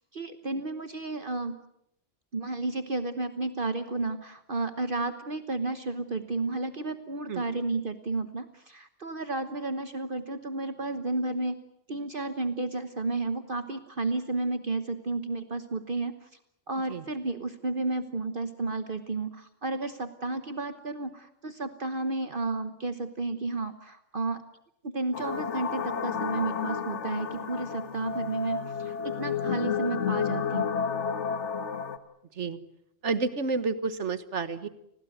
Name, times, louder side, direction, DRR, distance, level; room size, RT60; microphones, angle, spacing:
voice 1, 0.1-1.6 2.3-11.6 11.9-16.3 16.7-24.4 24.8-30.7, right 2 dB, 45° right, 9 dB, 1.3 m, -32 dB
sound 1, 25.1-32.0, left 7 dB, 70° left, 1.7 m, -31 dB
voice 2, 33.0-34.7, right 4 dB, 75° right, 13 dB, 1.6 m, -30 dB
29.5 x 21.0 x 7.9 m, 0.79 s
omnidirectional pair, 1.2 m